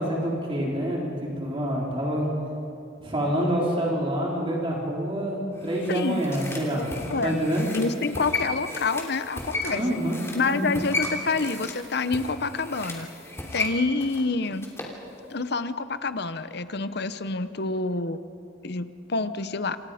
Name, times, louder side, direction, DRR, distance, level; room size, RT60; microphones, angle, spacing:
voice 1, 0.0-2.3 3.0-7.7 9.7-10.2 10.4-10.7, equal, 25° right, -3 dB, 3.9 m, -27 dB
sound 1, 5.6-15.0 15.3-15.4, left 2 dB, 15° left, 3.0 m, -35 dB
voice 2, 5.9-6.2 7.1-7.4 7.7-9.8 10.3-13.1 13.5-14.7 15.3-18.2 18.6-19.8, left 3 dB, 60° left, 12 dB, 0.9 m, -27 dB
28.0 x 27.0 x 5.1 m, 2.6 s
head